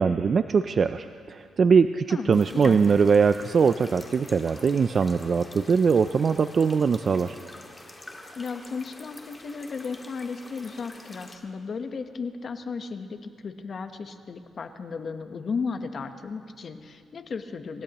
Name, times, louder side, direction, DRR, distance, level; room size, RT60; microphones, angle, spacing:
voice 1, 0.0-7.4, right 5 dB, 45° right, 10 dB, 0.4 m, -22 dB
voice 2, 2.1-2.8 8.4-17.8, left 5 dB, 50° left, 8 dB, 1.1 m, -35 dB
sound 1, 2.3-11.4, left 2 dB, 20° left, 2.0 m, -46 dB
28.0 x 16.5 x 3.0 m, 2.2 s
cardioid pair, 90°, 0 cm